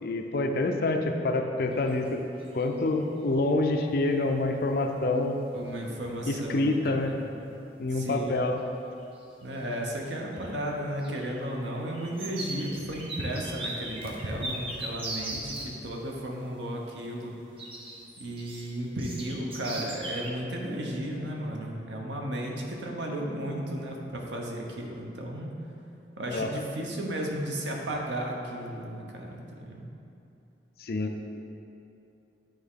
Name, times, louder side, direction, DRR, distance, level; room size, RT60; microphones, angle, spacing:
voice 1, 0.0-2.2 2.5-5.4 6.3-7.2 7.8-8.6 26.3-26.5 30.8-31.4, left 2 dB, 55° left, 4 dB, 0.5 m, -27 dB
sound 1, 1.9-2.1 2.4-3.0 5.0-5.1 5.7-5.8 6.1-6.4 6.7-7.3 7.8-7.9 9.0-9.4 9.7-15.7 17.6-20.3, right 1 dB, 30° right, 0.7 m, -39 dB
voice 2, 5.5-7.0 7.9-8.3 9.4-17.3 18.2-25.5 26.2-29.9, right 1 dB, 90° right, 0 dB, 0.9 m, -34 dB
8.9 x 3.6 x 3.6 m, 2.7 s
head